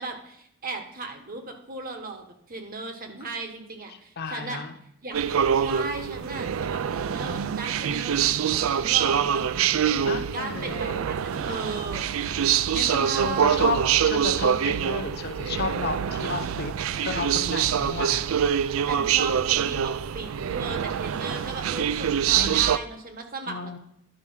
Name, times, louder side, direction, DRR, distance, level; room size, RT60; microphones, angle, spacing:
voice 1, 0.0-4.6 5.0-5.2 5.5-9.4 9.9-12.0 12.9-13.8 17.8-18.0 18.8-23.8, right 3 dB, 45° right, 5 dB, 1.3 m, -36 dB
voice 2, 4.2-4.8 10.0-11.1 12.7-13.8 14.0-16.7 17.0-18.2 22.3-22.5 23.5-23.8, left 4 dB, 50° left, 7 dB, 0.8 m, -32 dB
sound 1, 5.1-22.8, right 8 dB, 75° right, 0.4 m, -25 dB
11.0 x 4.7 x 5.6 m, 0.77 s
head